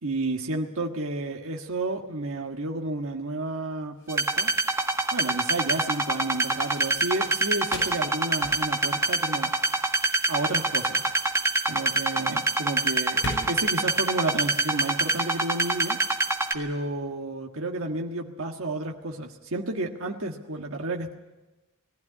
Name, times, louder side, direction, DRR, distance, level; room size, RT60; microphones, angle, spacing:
voice 1, 0.0-4.5 5.1-9.5 10.3-11.0 11.7-13.2 13.5-16.0 16.5-21.1, right 2 dB, 65° right, 2 dB, 1.6 m, -31 dB
sound 1, 1.4-15.1, left 1 dB, 65° left, 6.7 m, -43 dB
sound 2, 4.1-16.5, right 2 dB, 15° right, 1.6 m, -25 dB
20.0 x 15.5 x 9.8 m, 1.1 s
head